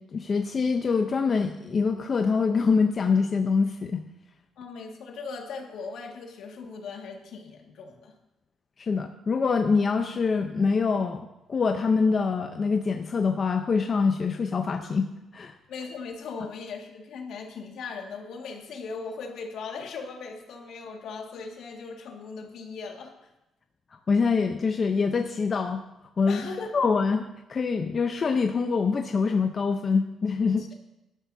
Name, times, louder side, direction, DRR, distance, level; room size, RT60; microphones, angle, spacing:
voice 1, 0.0-4.0 8.8-15.5 24.1-25.8 26.2-26.4 26.7-27.2 27.5-30.7, left 5 dB, 40° left, 5 dB, 0.8 m, -25 dB
voice 2, 4.6-8.1 15.7-23.3 26.3-26.7 30.6-30.7, left 4 dB, 75° left, 1 dB, 2.1 m, -39 dB
18.0 x 12.0 x 2.8 m, 0.94 s
cardioid pair, 90°, 0 cm